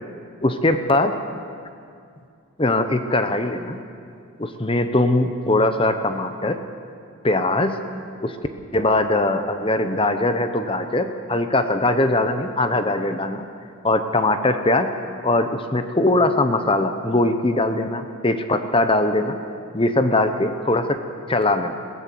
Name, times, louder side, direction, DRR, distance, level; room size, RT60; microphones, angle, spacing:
voice 1, 0.4-1.2 2.6-3.8 4.4-6.6 7.2-7.8 8.2-8.4 8.7-13.5 13.8-14.9 15.2-19.4 19.7-21.0 21.3-21.8, left 2 dB, 25° left, 8 dB, 0.9 m, -21 dB
22.0 x 17.0 x 7.7 m, 2.3 s
head